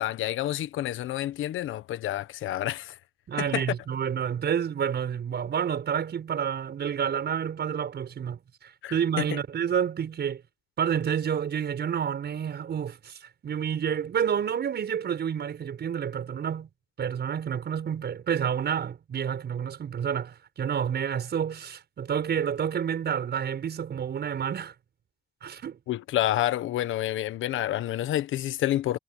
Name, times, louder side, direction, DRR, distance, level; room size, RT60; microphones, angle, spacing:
voice 1, 0.0-3.0 3.4-3.6 8.8-9.4 25.9-29.0, left 13 dB, 80° left, 1.3 m, -29 dB
voice 2, 3.3-10.4 10.8-16.7 17.0-24.7 25.4-25.8, right 8 dB, 55° right, 6.7 m, -29 dB
cardioid pair, 90°, 20 cm